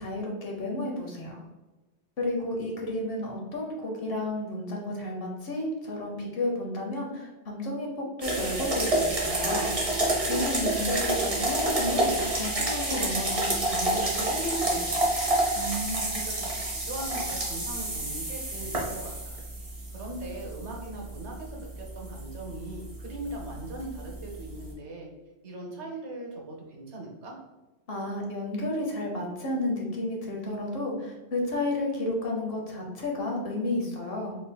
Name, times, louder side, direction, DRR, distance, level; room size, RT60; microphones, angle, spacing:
voice 1, 0.0-1.4 2.2-9.7 10.3-14.9 27.9-34.4, left 1 dB, 60° left, 0 dB, 1.0 m, -32 dB
sound 1, 8.2-24.7, right 1 dB, 35° right, 1.0 m, -29 dB
voice 2, 10.1-10.5 15.5-19.4 19.9-25.1 25.4-27.4, right 2 dB, 85° right, 0 dB, 1.1 m, -39 dB
3.6 x 3.6 x 2.2 m, 1.1 s
omnidirectional pair, 1.1 m